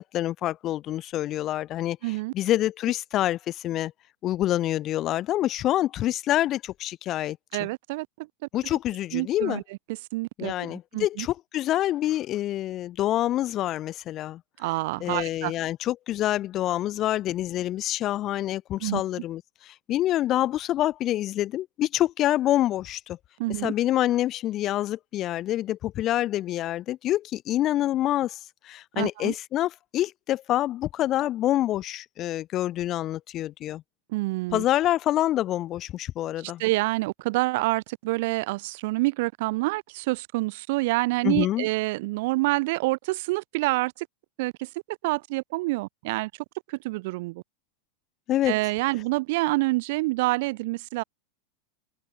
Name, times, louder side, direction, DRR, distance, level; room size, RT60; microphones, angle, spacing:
voice 1, 0.0-3.9 4.2-7.4 8.5-9.6 10.4-14.4 15.0-23.2 23.6-28.4 28.6-33.8 34.5-36.6 41.2-41.7 48.3-48.5, left 13 dB, 40° left, 7.2 m, -26 dB
voice 2, 2.0-2.3 7.5-8.3 8.7-8.8 9.1-9.6 9.9-11.3 14.6-15.5 18.8-19.0 23.4-23.7 28.9-29.3 34.1-34.6 36.4-44.1 44.4-46.3 46.7-47.4 48.4-51.0, right 22 dB, 65° right, 5.9 m, -27 dB
open air
supercardioid pair, 125°, 0 cm